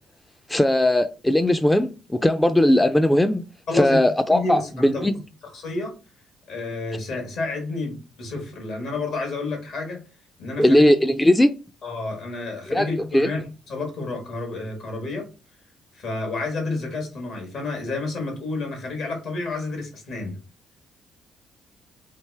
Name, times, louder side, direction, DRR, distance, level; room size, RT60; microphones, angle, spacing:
voice 1, 0.5-3.4 3.7-5.1 10.6-11.5 12.7-12.9 13.1-13.3, left 1 dB, 10° left, 0.3 m, -18 dB
voice 2, 3.7-4.0 4.3-5.1 5.4-5.9 6.5-10.0 10.4-10.8 11.8-15.2 15.9-20.3, left 3 dB, 70° left, 1.5 m, -30 dB
3.4 x 2.5 x 3.3 m
supercardioid pair, 55°, 0 cm